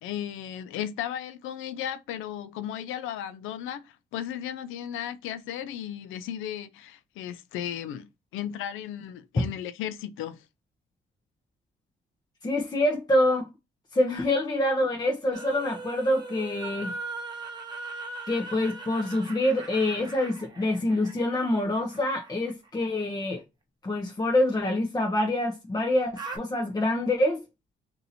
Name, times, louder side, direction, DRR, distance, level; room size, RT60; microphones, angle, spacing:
voice 1, 0.0-10.4, left 10 dB, 90° left, 0.5 m, -35 dB
voice 2, 12.4-13.5 13.9-16.9 18.3-23.4 23.8-27.4, left 1 dB, 20° left, 0.7 m, -26 dB
sound 1, 15.3-23.2 26.2-26.4, right 3 dB, 20° right, 0.9 m, -40 dB
2.7 x 2.7 x 4.0 m
cardioid pair, 90°, 20 cm